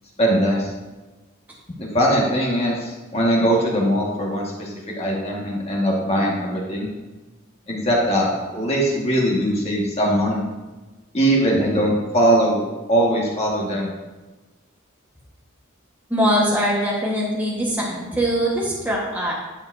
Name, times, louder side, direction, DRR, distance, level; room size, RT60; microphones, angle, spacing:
voice 1, 0.2-0.7 1.9-6.9 7.7-10.4 11.1-12.6 12.9-13.9, right 1 dB, 30° left, -3 dB, 1.6 m, -21 dB
voice 2, 16.1-19.3, equal, 10° right, -5 dB, 1.3 m, -22 dB
10.5 x 7.0 x 2.7 m, 1.2 s
head